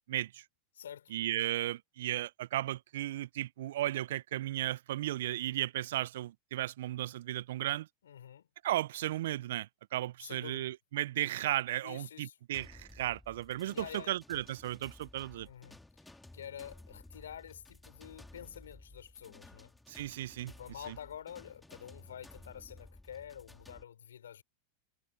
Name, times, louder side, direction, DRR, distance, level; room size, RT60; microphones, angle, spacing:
voice 1, 0.1-0.4 1.1-7.9 8.6-15.5 19.9-20.5 20.9-21.0, right 14 dB, 65° right, 0.7 m, -35 dB
voice 2, 0.7-1.1 8.0-8.5 10.2-10.7 11.8-12.4 13.7-14.2 15.4-15.8 16.3-19.7 20.5-24.4, left 9 dB, 75° left, 4.7 m, -48 dB
sound 1, 12.5-23.8, left 2 dB, 5° left, 3.2 m, -55 dB
hypercardioid pair, 90°, 0 cm